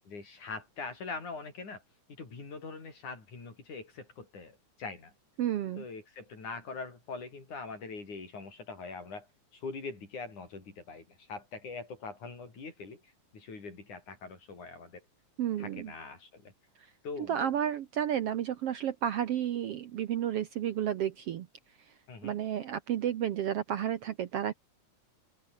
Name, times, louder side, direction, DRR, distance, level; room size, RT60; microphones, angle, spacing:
voice 1, 0.1-1.8 2.2-5.1 5.8-9.3 9.5-15.0 15.6-16.5 17.0-17.5 22.1-22.4, left 4 dB, 70° left, 7.6 m, -43 dB
voice 2, 5.4-5.8 15.4-15.9 17.2-21.5 21.9-22.0 22.2-24.5, right 10 dB, 65° right, 1.6 m, -32 dB
open air
omnidirectional pair, 3.6 m